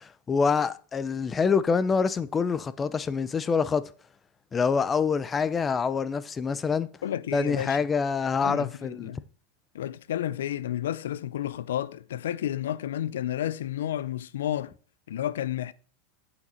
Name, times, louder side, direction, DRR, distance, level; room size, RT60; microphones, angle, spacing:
voice 1, 0.0-3.8 4.5-6.9 7.3-9.1, left 5 dB, 20° left, 0.6 m, -26 dB
voice 2, 7.0-7.8 8.4-9.2 9.7-14.7 15.1-15.7, left 11 dB, 85° left, 0.5 m, -31 dB
8.9 x 6.4 x 4.3 m
supercardioid pair, 125°, 0 cm